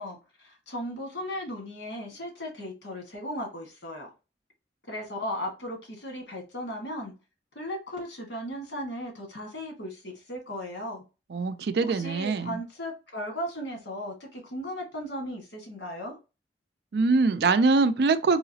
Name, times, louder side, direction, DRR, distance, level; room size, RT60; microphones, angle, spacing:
voice 1, 0.0-4.1 4.9-7.1 7.5-11.0 11.8-16.2, equal, 75° left, 1.5 m, -36 dB
voice 2, 11.3-12.6 16.9-18.4, right 3 dB, 65° right, 0.4 m, -23 dB
3.8 x 2.9 x 2.7 m
head